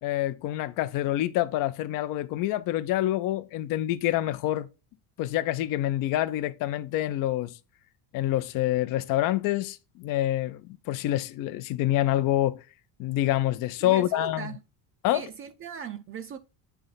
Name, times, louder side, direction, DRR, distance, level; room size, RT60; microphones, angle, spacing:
voice 1, 0.0-4.7 5.2-7.6 8.1-10.6 10.9-12.6 13.0-14.5 15.0-15.2, left 14 dB, 50° left, 0.5 m, -27 dB
voice 2, 13.8-14.6 15.1-16.4, right 8 dB, 30° right, 0.4 m, -38 dB
8.7 x 3.4 x 3.9 m
cardioid pair, 135°, 43 cm